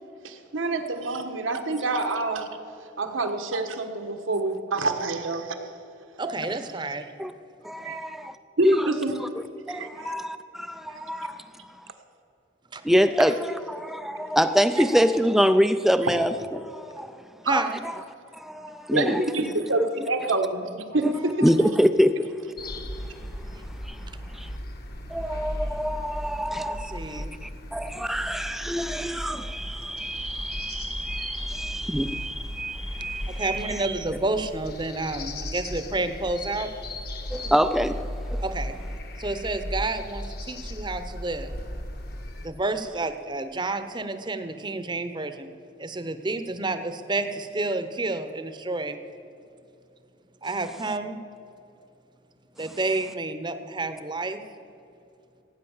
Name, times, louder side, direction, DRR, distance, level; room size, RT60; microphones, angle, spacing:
voice 1, 0.2-2.5 3.0-5.6 6.2-6.4 7.8-8.0 8.6-9.1 9.7-10.1 10.9-11.0 12.9-13.1 17.4-17.5 18.9-21.5, right 2 dB, 85° right, 1.4 m, -27 dB
voice 2, 6.2-7.1 12.7-12.8 17.4-17.8 26.7-27.3 33.3-36.7 38.4-38.7 39.2-41.5 42.4-45.5 45.8-49.0 50.4-51.2 52.6-54.4, right 2 dB, 25° right, 0.8 m, -30 dB
voice 3, 7.6-8.4 8.6-8.9 9.2-9.3 9.7-11.4 12.8-17.1 17.5-17.9 18.4-19.3 19.8-19.9 21.0-21.1 21.4-22.4 23.8-24.0 24.3-24.5 25.1-33.6 37.3-38.4, equal, ahead, 0.3 m, -25 dB
sound 1, 22.6-42.5, left 1 dB, 50° left, 1.3 m, -36 dB
17.0 x 9.4 x 7.2 m
head